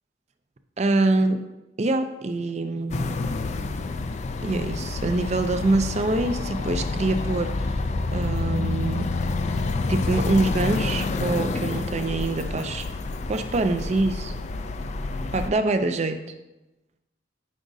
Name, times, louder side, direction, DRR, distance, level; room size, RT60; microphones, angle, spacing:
voice 1, 0.8-1.4 1.8-3.2 4.4-7.8 8.1-9.1 9.9-12.8 13.3-14.3 15.3-16.2, right 2 dB, 35° right, 8 dB, 0.5 m, -25 dB
sound 1, 2.9-15.5, left 3 dB, 35° left, 0.3 m, -28 dB
9.8 x 5.0 x 2.7 m, 0.98 s
head